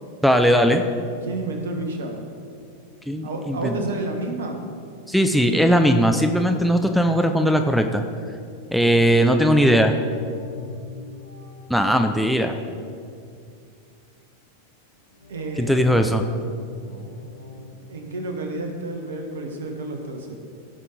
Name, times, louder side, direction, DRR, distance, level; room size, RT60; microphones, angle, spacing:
voice 1, 0.2-0.8 3.1-3.8 5.1-8.0 8.7-9.9 11.7-12.6 15.6-16.2, equal, ahead, 4 dB, 0.5 m, -19 dB
voice 2, 1.2-2.2 3.2-4.6 15.3-16.0 17.9-20.3, right 2 dB, 65° right, 3 dB, 1.4 m, -30 dB
Recurving Filter Arp, 10.0-13.5 15.1-17.7, left 2 dB, 70° left, 1.0 m, -43 dB
16.0 x 5.6 x 4.0 m, 2.4 s
figure-of-eight pair, 90°, 0 cm